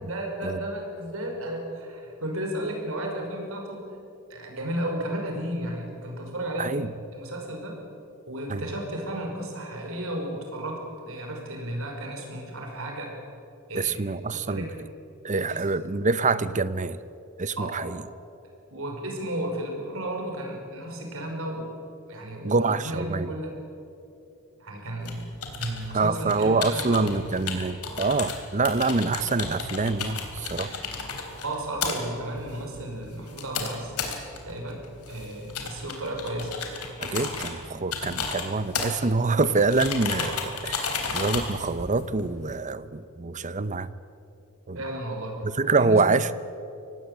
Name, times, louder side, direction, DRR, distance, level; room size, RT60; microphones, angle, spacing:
voice 1, 0.0-3.8 4.3-6.7 7.1-7.8 8.3-13.1 13.7-14.0 14.5-14.8 15.5-15.6 17.6-17.9 18.7-21.7 22.1-23.6 24.6-25.3 25.6-27.2 31.3-33.9 34.4-36.5 44.7-46.0, right 1 dB, 65° right, 1 dB, 5.7 m, -33 dB
voice 2, 6.6-6.9 8.5-8.6 13.7-14.7 15.2-17.0 17.4-18.0 22.4-23.3 25.9-30.7 37.0-43.9 44.7-44.8 45.6-46.3, right 3 dB, 35° right, 15 dB, 0.8 m, -25 dB
sound 1, 25.0-42.6, left 5 dB, 85° left, 3.6 m, -34 dB
24.5 x 19.0 x 8.2 m, 2.8 s
head